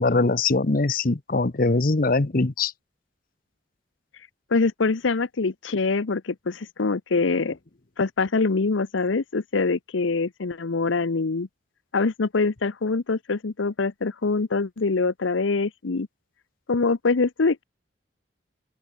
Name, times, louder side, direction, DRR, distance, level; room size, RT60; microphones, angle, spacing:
voice 1, 0.0-2.7, left 3 dB, 50° left, 0.9 m, -22 dB
voice 2, 4.5-7.6 8.0-11.5 11.9-16.1 16.7-17.6, left 4 dB, 90° left, 0.8 m, -24 dB
open air
head